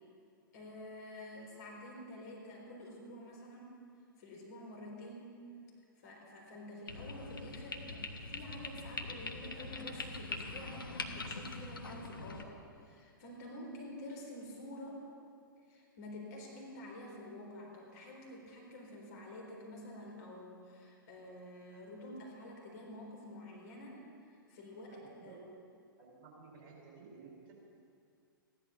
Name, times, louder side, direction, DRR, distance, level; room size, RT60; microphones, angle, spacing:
voice 1, 0.5-3.8 4.2-5.4 6.0-15.0 15.7-25.4, left 1 dB, 50° left, -1 dB, 4.0 m, -49 dB
sound 1, 6.9-12.4, left 3 dB, 70° left, 1.2 m, -43 dB
voice 2, 24.8-25.4 26.0-27.5, right 4 dB, 40° right, -2 dB, 4.9 m, -55 dB
15.5 x 11.0 x 7.0 m, 2.4 s
figure-of-eight pair, 110°, 12 cm